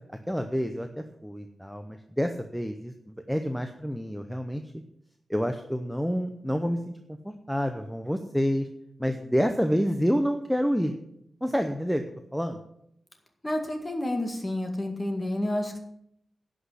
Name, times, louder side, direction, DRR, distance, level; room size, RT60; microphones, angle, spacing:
voice 1, 0.3-0.9 1.2-2.9 3.3-4.6 5.3-6.9 7.2-8.7 9.0-10.9 11.4-12.0 12.3-12.6, equal, ahead, 6 dB, 0.7 m, -28 dB
voice 2, 13.4-15.8, left 1 dB, 20° left, 4 dB, 2.0 m, -29 dB
11.0 x 6.2 x 8.0 m, 0.75 s
wide cardioid pair, 130°, 0 cm